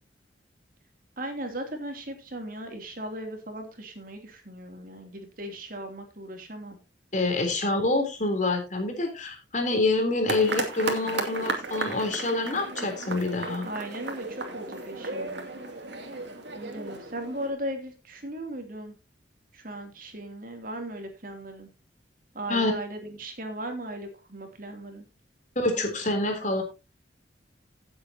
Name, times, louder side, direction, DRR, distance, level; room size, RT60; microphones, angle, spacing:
voice 1, 1.2-6.8 13.6-15.4 16.5-19.0 19.5-21.7 22.3-25.0, right 1 dB, 50° right, 4 dB, 2.9 m, -37 dB
voice 2, 7.1-13.7 22.5-22.7 25.5-26.6, left 2 dB, 45° left, 5 dB, 3.4 m, -26 dB
sound 1, 10.3-17.5, right 3 dB, 75° right, 2.5 m, -34 dB
16.5 x 8.1 x 2.8 m, 0.27 s
head